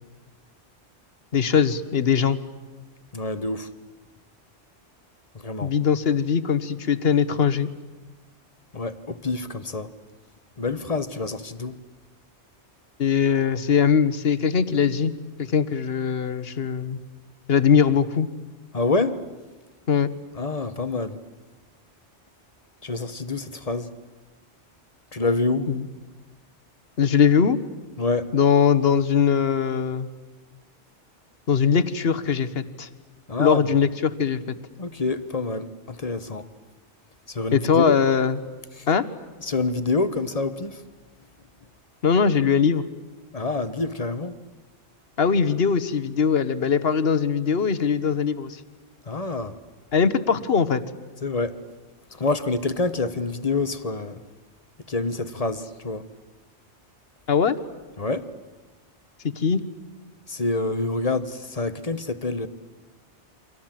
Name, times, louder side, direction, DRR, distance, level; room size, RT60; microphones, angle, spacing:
voice 1, 1.3-2.4 5.6-7.7 13.0-15.1 15.4-17.0 17.5-18.3 19.9-20.1 25.7-25.9 27.0-27.6 28.3-30.1 31.5-32.9 33.4-34.4 37.5-38.4 38.9-39.1 42.0-42.8 45.2-48.6 49.9-50.8 57.3-57.6 59.4-59.6, left 7 dB, 60° left, 1.4 m, -21 dB
voice 2, 3.1-3.7 5.3-5.7 8.7-9.9 10.6-11.8 18.7-19.2 20.4-21.2 22.8-23.9 25.1-25.8 28.0-28.3 33.3-33.7 34.8-36.5 37.3-38.0 38.8-38.9 39.4-40.8 43.3-44.3 49.1-49.6 51.2-51.6 52.1-54.2 54.9-56.0 58.0-58.3 60.3-62.5, left 3 dB, 35° left, 1.1 m, -27 dB
29.5 x 25.0 x 7.6 m
omnidirectional pair, 1.2 m